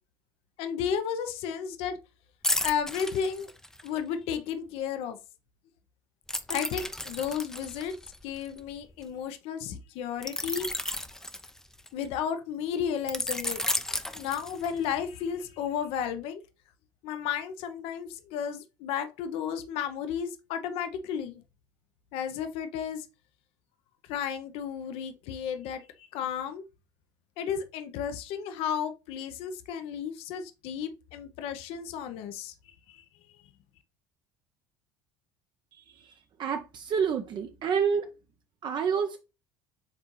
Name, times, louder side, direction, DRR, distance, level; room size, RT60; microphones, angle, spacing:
voice 1, 0.6-2.0 2.6-3.5 3.8-5.2 6.5-7.9 8.2-10.7 11.9-13.6 14.1-16.4 17.0-21.4 22.1-23.1 24.1-25.9 26.1-26.6 27.4-32.5 32.9-33.0, left 8 dB, 60° left, 0.7 m, -33 dB
sound 1, 2.4-4.0 6.3-9.0 10.2-12.1 13.1-14.9 15.4-15.6, left 1 dB, 5° left, 0.5 m, -33 dB
voice 2, 36.4-38.1 38.6-39.2, right 6 dB, 45° right, 0.6 m, -28 dB
4.9 x 3.5 x 3.1 m
hypercardioid pair, 70°, 11 cm